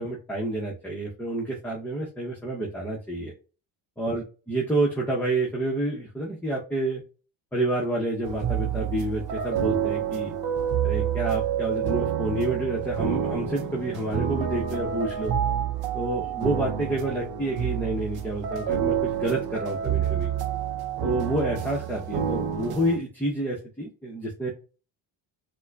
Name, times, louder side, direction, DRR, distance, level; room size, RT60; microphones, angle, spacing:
voice 1, 0.0-3.3 4.0-7.0 7.5-10.4 10.8-15.4 15.9-20.3 21.0-24.5, right 1 dB, 5° left, -3 dB, 0.8 m, -29 dB
sound 1, 8.2-23.0, right 9 dB, 50° right, 0.7 m, -28 dB
4.2 x 2.2 x 2.4 m, 0.35 s
supercardioid pair, 75°, 48 cm